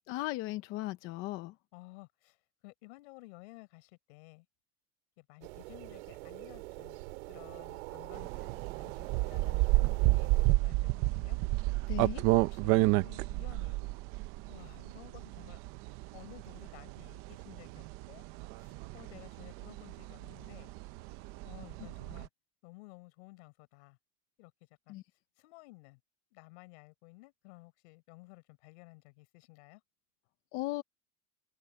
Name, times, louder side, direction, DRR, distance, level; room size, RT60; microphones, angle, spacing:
voice 1, 0.1-1.5 11.9-12.2 24.9-25.0 30.5-30.8, left 18 dB, 35° left, 0.7 m, -36 dB
voice 2, 1.7-2.4 2.6-4.5 5.2-7.0 7.3-11.4 12.0-12.1 12.4-13.8 14.5-15.6 16.1-18.2 18.6-20.7 21.4-22.3 22.6-24.0 24.4-24.5 24.9-25.0 25.4-26.0 26.3-29.8, left 25 dB, 65° left, 5.3 m, -54 dB
sound 1, 5.4-10.5, right 24 dB, 70° right, 2.5 m, -44 dB
sound 2, 8.1-22.3, right 20 dB, 40° right, 0.6 m, -31 dB
cardioid pair, 175°, 36 cm